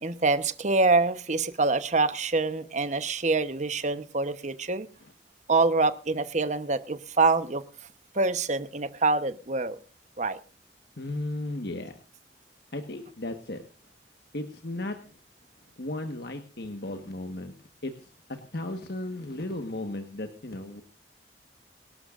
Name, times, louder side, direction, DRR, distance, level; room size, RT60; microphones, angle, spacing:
voice 1, 0.0-4.9 5.5-7.6 8.1-9.8 10.2-10.4, right 3 dB, 45° right, 11 dB, 1.1 m, -25 dB
voice 2, 11.0-12.0 12.7-13.6 14.3-15.0 15.8-17.5 17.8-18.1 18.5-20.8, left 1 dB, 65° left, 6 dB, 1.5 m, -35 dB
24.0 x 12.0 x 2.6 m, 0.33 s
head